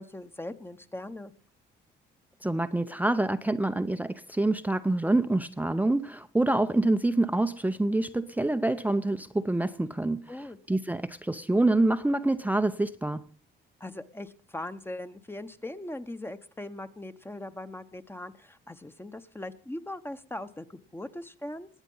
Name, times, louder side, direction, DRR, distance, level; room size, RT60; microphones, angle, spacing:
voice 1, 0.0-1.3 10.3-10.6 13.8-21.7, left 1 dB, 10° left, 1.0 m, -40 dB
voice 2, 2.4-13.2, right 2 dB, 10° right, 0.6 m, -26 dB
20.5 x 8.0 x 5.5 m
cardioid pair, 90°, 20 cm